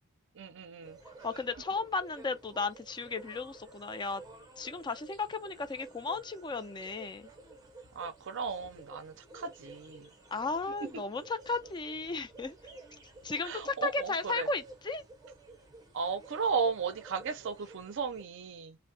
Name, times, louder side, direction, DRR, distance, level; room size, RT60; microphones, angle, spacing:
voice 1, 0.4-1.0 7.9-10.1 10.8-10.9 13.4-14.5 15.9-18.8, right 5 dB, 60° right, 0.5 m, -35 dB
sound 1, 0.8-18.2, right 3 dB, 20° right, 0.6 m, -53 dB
voice 2, 1.2-4.2 4.6-7.3 10.3-12.6 13.2-15.0, left 3 dB, 20° left, 0.4 m, -35 dB
3.3 x 2.0 x 2.6 m
head